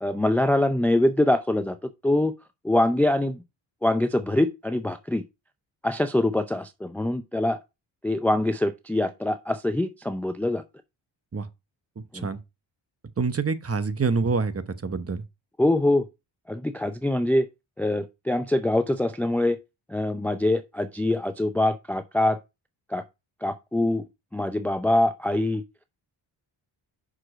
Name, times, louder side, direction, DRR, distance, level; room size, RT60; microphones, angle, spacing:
voice 1, 0.0-2.3 2.6-3.4 3.8-5.2 5.8-7.6 8.0-10.6 12.1-12.3 15.6-16.1 16.5-17.5 17.8-19.6 19.9-22.4 22.9-23.0 23.4-24.0 24.3-25.6, left 1 dB, 5° left, 0.5 m, -24 dB
voice 2, 12.0-12.4 13.2-15.2, right 4 dB, 30° right, 1.0 m, -26 dB
5.9 x 5.0 x 4.9 m
cardioid pair, 75°, 49 cm